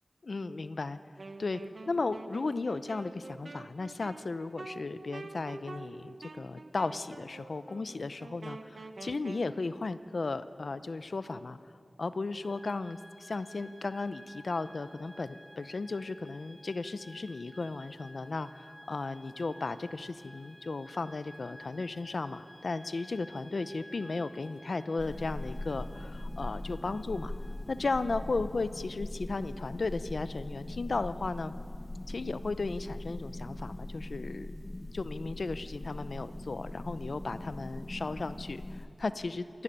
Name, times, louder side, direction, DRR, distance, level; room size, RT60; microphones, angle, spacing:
voice 1, 0.2-1.0 1.4-1.6 1.9-11.6 12.0-27.3 27.7-31.5 32.1-34.5 34.9-39.6, left 3 dB, 90° left, 13 dB, 0.7 m, -35 dB
Wind instrument woodwind instrument, 1.2-9.5, right 3 dB, 85° right, 1.0 m, -47 dB
sound 1, 12.4-28.0, equal, 15° right, 3.9 m, -54 dB
sound 2, 25.0-38.9, left 1 dB, 35° left, 1.6 m, -41 dB
27.0 x 12.0 x 10.0 m, 2.6 s
wide cardioid pair, 70°, 0 cm